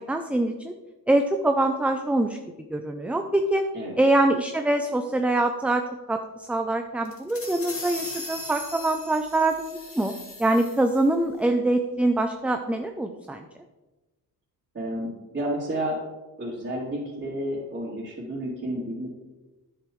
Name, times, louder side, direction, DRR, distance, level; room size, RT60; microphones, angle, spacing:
voice 1, 0.1-0.7 1.1-2.4 2.7-3.6 4.0-5.8 6.1-6.2 6.5-10.1 10.4-13.5, right 2 dB, 5° right, 6 dB, 0.3 m, -24 dB
sound 1, 7.1-11.1, left 2 dB, 35° left, 2.0 m, -39 dB
voice 2, 14.7-16.0 16.4-19.1, right 1 dB, 35° right, -9 dB, 2.9 m, -31 dB
10.0 x 7.5 x 3.1 m, 1.1 s
cardioid pair, 115°, 37 cm